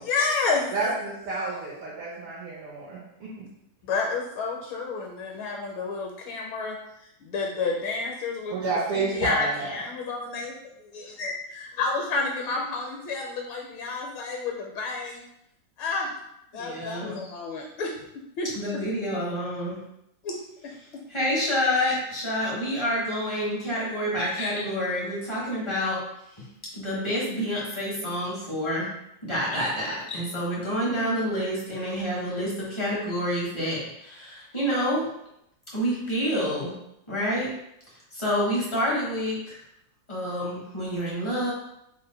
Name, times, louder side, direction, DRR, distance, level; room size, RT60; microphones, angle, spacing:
voice 1, 0.0-0.7 3.8-6.8 7.2-10.5 11.2-15.2 15.8-16.1 16.5-17.9 18.4-18.5 20.2-20.4 24.2-24.6 29.5-29.6 30.1-30.2, left 4 dB, 75° left, 0 dB, 1.4 m, -30 dB
voice 2, 0.7-3.5 8.5-9.7, right 3 dB, 80° right, -6 dB, 1.7 m, -30 dB
voice 3, 16.5-17.2 18.5-19.8 21.1-26.0 26.4-26.5 26.7-28.9 29.2-35.0 35.7-36.7 37.1-37.5 38.1-39.6 40.1-41.5, equal, 40° left, -7 dB, 0.4 m, -28 dB
4.3 x 2.1 x 3.9 m, 0.80 s
omnidirectional pair, 2.4 m